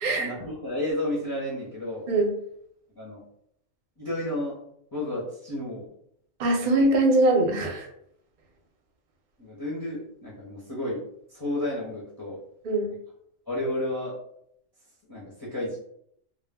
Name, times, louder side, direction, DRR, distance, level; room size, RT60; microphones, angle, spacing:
voice 1, 0.2-2.1 3.0-3.2 4.0-4.6 4.9-5.9 6.6-6.7 9.4-11.0 11.3-12.4 13.5-14.2 15.1-15.8, left 1 dB, 25° left, -7 dB, 0.5 m, -31 dB
voice 2, 6.4-7.9 12.6-12.9, right 2 dB, 50° right, 2 dB, 0.6 m, -22 dB
2.3 x 2.1 x 3.4 m, 0.70 s
omnidirectional pair, 1.3 m